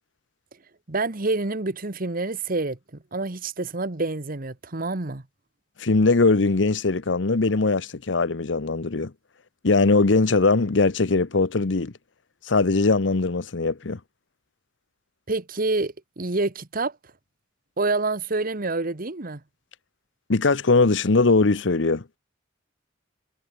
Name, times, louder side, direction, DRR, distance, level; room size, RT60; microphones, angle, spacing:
voice 1, 0.9-2.8 3.1-5.2 15.3-17.0 17.8-19.4, right 3 dB, 50° right, 1.4 m, -27 dB
voice 2, 5.8-9.1 9.6-11.9 12.5-14.0 20.3-22.2, left 3 dB, 70° left, 0.9 m, -21 dB
head